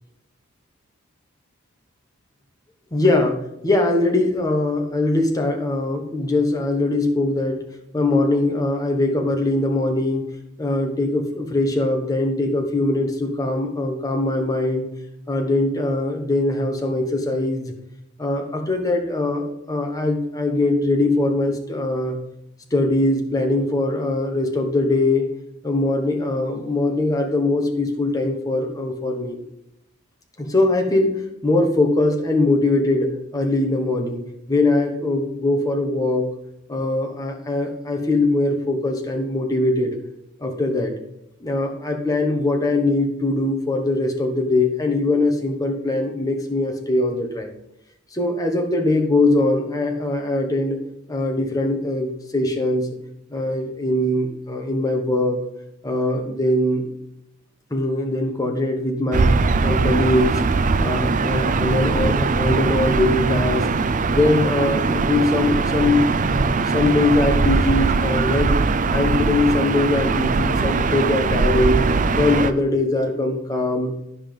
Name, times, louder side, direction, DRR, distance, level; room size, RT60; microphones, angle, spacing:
voice 1, 2.9-7.6 7.9-10.3 10.6-14.9 15.3-17.7 18.2-22.2 22.7-25.3 25.6-29.4 30.4-34.2 34.5-36.3 36.7-40.0 40.4-40.9 41.4-47.5 48.1-50.8 51.1-52.9 53.3-55.4 55.8-56.9 57.7-59.3 59.6-60.4 60.8-63.7 64.1-68.5 68.9-71.8 72.1-73.9, left 2 dB, 15° left, 2 dB, 1.2 m, -21 dB
Gull seagull / Ocean, 59.1-72.5, right 4 dB, 40° right, 0.4 m, -20 dB
10.0 x 5.6 x 5.2 m, 0.81 s
head